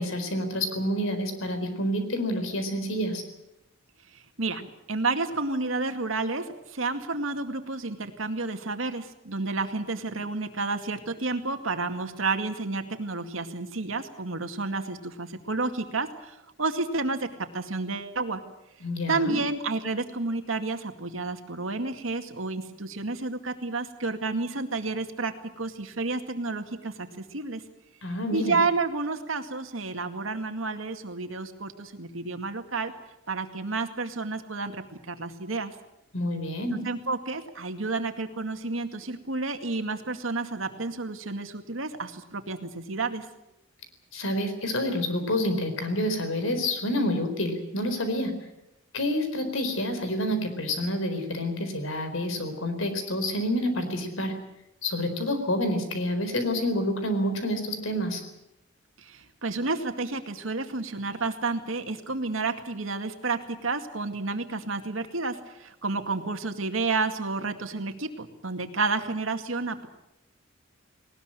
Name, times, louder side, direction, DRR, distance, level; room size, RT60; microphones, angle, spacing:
voice 1, 0.0-3.2 18.8-19.4 28.0-28.6 36.1-36.8 44.1-48.3 48.9-54.3 54.8-58.2, left 1 dB, 85° left, 8 dB, 4.3 m, -28 dB
voice 2, 4.1-18.4 19.1-27.6 28.3-32.9 33.3-35.7 36.8-43.3 59.0-69.9, right 3 dB, 85° right, 7 dB, 2.2 m, -30 dB
19.5 x 19.5 x 9.1 m, 0.90 s
head